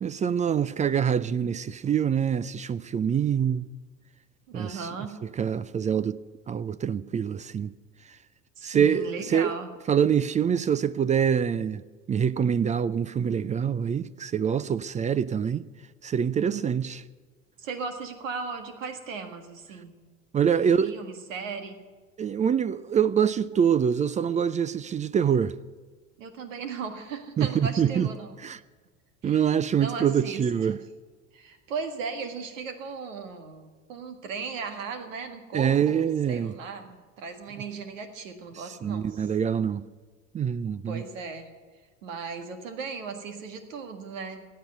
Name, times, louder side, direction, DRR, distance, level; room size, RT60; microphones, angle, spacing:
voice 1, 0.0-3.7 4.5-4.9 5.4-6.2 6.5-7.7 8.6-9.5 9.9-11.8 12.1-15.7 16.0-17.0 20.3-20.9 22.2-25.5 27.4-28.1 28.4-28.6 29.2-30.8 35.5-36.5 38.8-39.9 40.3-41.0, right 8 dB, 20° right, 0.4 m, -25 dB
voice 2, 4.5-5.2 8.6-9.7 16.5-16.7 17.6-20.1 20.8-21.8 26.2-28.4 29.2-30.4 31.3-39.3 40.9-41.5 42.0-44.5, right 5 dB, 75° right, 1.8 m, -37 dB
16.0 x 8.6 x 9.4 m
hypercardioid pair, 75°, 39 cm